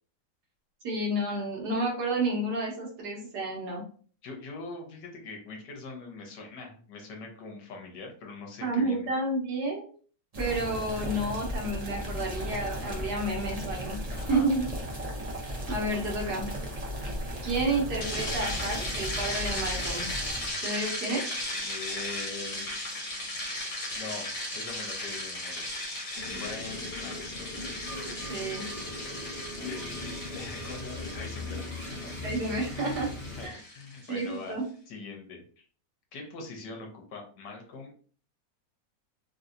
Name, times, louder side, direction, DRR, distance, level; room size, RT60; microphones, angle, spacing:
voice 1, 0.8-3.8 8.6-9.8 10.4-13.9 14.3-14.7 15.7-16.5 17.4-20.1 20.6-21.2 28.3-28.6 32.2-33.1 33.4-33.6 34.1-34.6, right 2 dB, 65° right, -2 dB, 1.6 m, -30 dB
voice 2, 4.2-9.1 14.1-14.5 21.6-22.7 23.9-25.7 26.3-27.6 29.6-32.1 32.7-34.6 34.9-35.7 36.1-37.9, left 3 dB, 70° left, 2 dB, 1.5 m, -43 dB
sound 1, 10.3-20.5, equal, 45° right, 0.5 m, -36 dB
sound 2, 18.0-34.3, left 1 dB, 50° left, 1.5 m, -36 dB
sound 3, 26.2-33.5, left 2 dB, 25° left, 0.8 m, -39 dB
3.6 x 2.7 x 2.5 m, 0.43 s
omnidirectional pair, 1.9 m